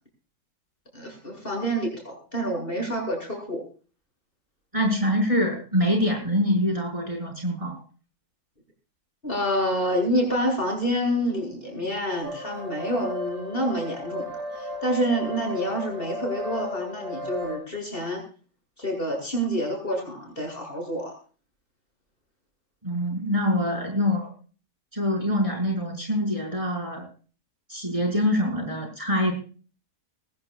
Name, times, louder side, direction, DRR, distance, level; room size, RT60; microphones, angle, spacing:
voice 1, 0.9-3.6 9.2-14.3 14.5-18.2 18.8-21.1, equal, 30° left, 1 dB, 7.6 m, -27 dB
voice 2, 4.7-7.7 22.8-24.3 24.9-27.0 27.7-29.3, equal, 20° right, -1 dB, 5.9 m, -25 dB
sound 1, 12.2-17.6, left 1 dB, 60° right, 5.9 m, -35 dB
22.0 x 15.5 x 2.5 m, 0.39 s
omnidirectional pair, 1.7 m